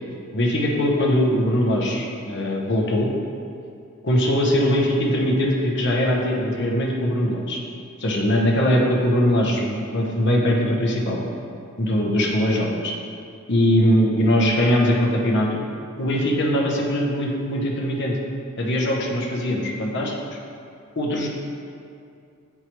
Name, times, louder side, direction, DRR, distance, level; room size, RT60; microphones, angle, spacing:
voice 1, 0.3-3.1 4.0-7.6 8.0-11.2 11.8-12.9 13.5-15.5 16.0-18.2 18.6-20.1 21.0-21.3, equal, 55° left, -1 dB, 0.9 m, -21 dB
8.5 x 4.8 x 3.0 m, 2.4 s
head